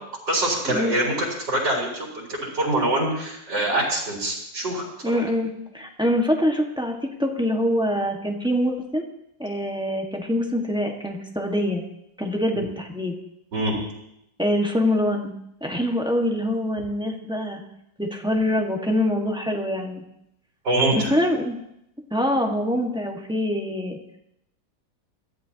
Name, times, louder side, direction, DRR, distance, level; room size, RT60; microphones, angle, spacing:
voice 1, 0.3-4.8 5.1-5.2 13.5-13.7 20.6-21.1, right 1 dB, 70° right, -4 dB, 4.5 m, -24 dB
voice 2, 5.0-9.0 9.4-11.8 12.2-13.1 14.4-15.3 15.6-17.6 18.0-20.0 20.9-21.6 22.1-24.0, left 1 dB, 5° right, 1 dB, 1.3 m, -24 dB
22.5 x 14.0 x 2.9 m, 0.79 s
omnidirectional pair, 1.9 m